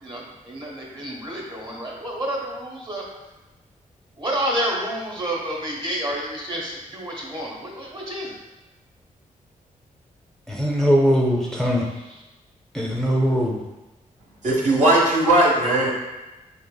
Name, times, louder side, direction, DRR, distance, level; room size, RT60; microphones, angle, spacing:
voice 1, 0.0-3.0 4.2-8.4 11.5-12.2, right 1 dB, 35° right, -3 dB, 1.0 m, -30 dB
voice 2, 10.5-11.8 12.7-13.6, equal, 5° left, -2 dB, 0.4 m, -20 dB
voice 3, 14.4-15.9, right 1 dB, 60° right, -4 dB, 0.9 m, -18 dB
3.8 x 2.8 x 2.2 m, 1.1 s
cardioid pair, 85°, 14 cm